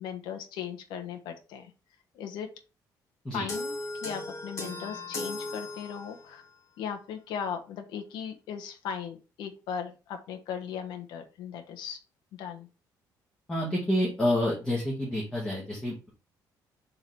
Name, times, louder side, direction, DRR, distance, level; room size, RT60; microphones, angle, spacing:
voice 1, 0.0-1.7 2.1-2.5 3.3-3.8 4.0-6.4 6.8-12.0 12.4-12.7, left 7 dB, 90° left, 5 dB, 1.2 m, -37 dB
sound 1, 3.5-6.4, left 2 dB, 45° left, 2.0 m, -36 dB
voice 2, 13.5-16.1, left 1 dB, 10° left, -6 dB, 1.8 m, -28 dB
7.1 x 3.9 x 3.4 m, 0.32 s
cardioid pair, 165°, 7 cm